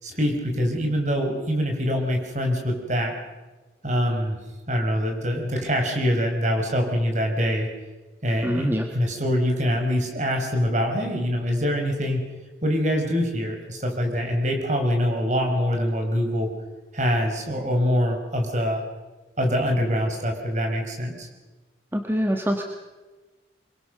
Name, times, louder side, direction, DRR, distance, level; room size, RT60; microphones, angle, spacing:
voice 1, 0.0-3.1 3.8-4.4 4.7-7.7 8.2-8.7 8.9-12.3 12.6-16.5 16.9-18.8 19.4-21.3, equal, 40° right, 3 dB, 5.0 m, -24 dB
voice 2, 8.4-8.9 21.9-22.6, equal, 10° right, 3 dB, 1.4 m, -24 dB
25.0 x 22.0 x 6.7 m, 1.2 s
head